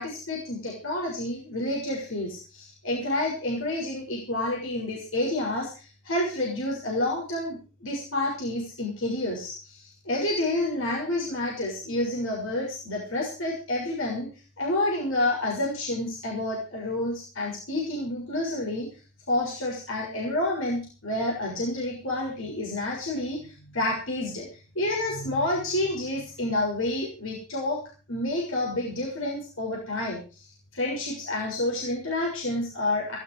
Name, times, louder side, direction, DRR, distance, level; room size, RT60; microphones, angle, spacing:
voice 1, 0.0-14.3 14.6-18.9 19.3-24.5 24.7-27.8 28.1-33.2, left 1 dB, 65° left, -3 dB, 6.8 m, -29 dB
18.0 x 14.5 x 5.0 m, 0.37 s
head